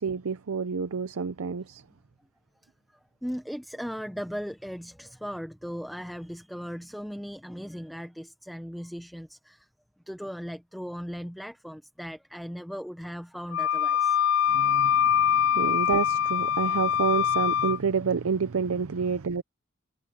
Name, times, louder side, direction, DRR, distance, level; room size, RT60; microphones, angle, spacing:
voice 1, 0.0-1.8 14.5-19.4, right 5 dB, 90° right, 0.6 m, -29 dB
voice 2, 3.2-9.7 10.1-14.2 15.5-15.7, equal, ahead, 0.7 m, -38 dB
Wind instrument woodwind instrument, 13.5-17.8, left 9 dB, 60° left, 0.3 m, -24 dB
head